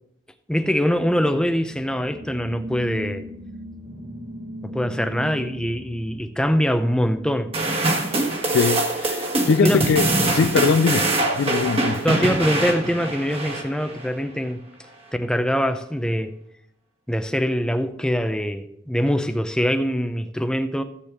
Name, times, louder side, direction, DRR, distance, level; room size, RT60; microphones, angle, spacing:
voice 1, 0.5-3.2 4.6-7.5 9.6-9.8 12.0-14.6 15.1-16.3 17.1-20.8, equal, 5° left, 0.6 m, -23 dB
sound 1, 0.9-8.7, equal, 55° right, 1.9 m, -39 dB
sound 2, 7.5-14.1, right 2 dB, 30° right, 1.5 m, -23 dB
voice 2, 8.5-11.1 11.3-12.0, left 5 dB, 75° left, 0.4 m, -21 dB
13.5 x 8.3 x 3.6 m
head